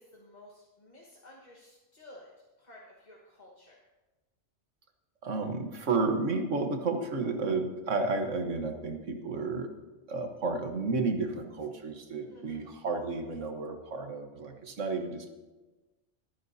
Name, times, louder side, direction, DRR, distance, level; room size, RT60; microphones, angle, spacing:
voice 1, 0.0-2.3 2.6-3.9 12.3-12.6, left 1 dB, 35° left, -3 dB, 1.6 m, -54 dB
voice 2, 5.2-9.7 10.1-15.3, right 3 dB, 80° right, 5 dB, 1.6 m, -32 dB
22.5 x 9.7 x 2.8 m, 1.2 s
omnidirectional pair, 1.3 m